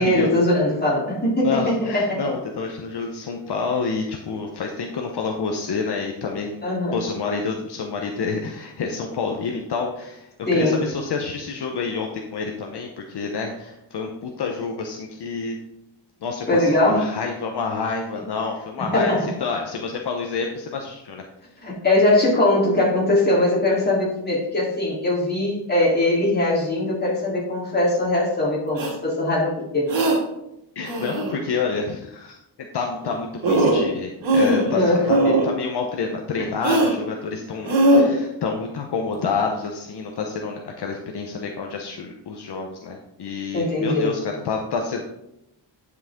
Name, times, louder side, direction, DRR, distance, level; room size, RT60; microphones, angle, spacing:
voice 1, 0.0-2.2 6.6-7.0 10.5-10.9 16.5-17.1 18.9-19.3 21.6-29.9 34.7-35.1 36.4-36.5 43.5-44.2, left 1 dB, 20° left, -5 dB, 3.3 m, -21 dB
voice 2, 1.4-6.6 6.9-15.6 16.2-21.2 30.7-32.4 32.7-45.0, left 5 dB, 60° left, 2 dB, 1.0 m, -28 dB
sound 1, 28.8-28.9 29.9-30.2 30.8-31.4 33.0-33.1 33.4-33.9 34.2-34.7 35.0-35.5 36.6-36.9 37.6-38.0, right 1 dB, 90° right, 2.6 m, -19 dB
10.0 x 6.1 x 3.7 m, 0.83 s
wide cardioid pair, 125°, 44 cm